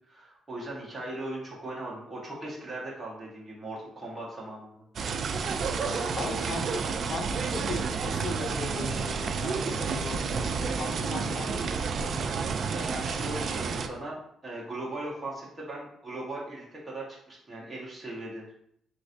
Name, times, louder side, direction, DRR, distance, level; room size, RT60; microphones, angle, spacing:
voice 1, 0.1-4.8 5.6-6.9 12.7-18.5, right 1 dB, 20° right, -5 dB, 1.5 m, -39 dB
sound 1, 5.0-13.9, right 5 dB, 55° right, 0.3 m, -30 dB
voice 2, 6.2-12.8, left 3 dB, 55° left, 4 dB, 0.6 m, -38 dB
4.0 x 3.0 x 2.7 m, 0.69 s
cardioid pair, 90°, 0 cm